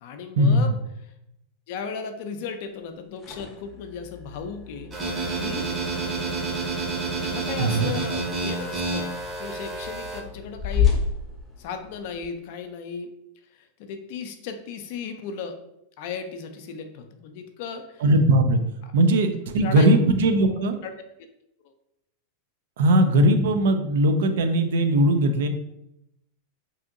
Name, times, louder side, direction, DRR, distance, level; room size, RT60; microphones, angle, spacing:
voice 1, 0.0-0.7 1.0-1.1 1.7-4.9 5.4-5.7 7.2-9.1 9.4-11.0 11.6-13.1 13.5-15.6 16.0-18.0 18.8-18.9 19.6-19.9 20.5-20.9, left 5 dB, 60° left, 7 dB, 0.4 m, -36 dB
sound 1, 2.9-12.3, left 7 dB, 20° left, 0.6 m, -32 dB
sound 2, 4.9-10.2, right 3 dB, 25° right, 0.7 m, -29 dB
voice 2, 7.6-7.9 18.0-18.6 18.9-20.8 22.8-25.5, right 1 dB, 70° right, 7 dB, 0.4 m, -19 dB
2.7 x 2.5 x 2.5 m, 0.82 s
hypercardioid pair, 95°, 0 cm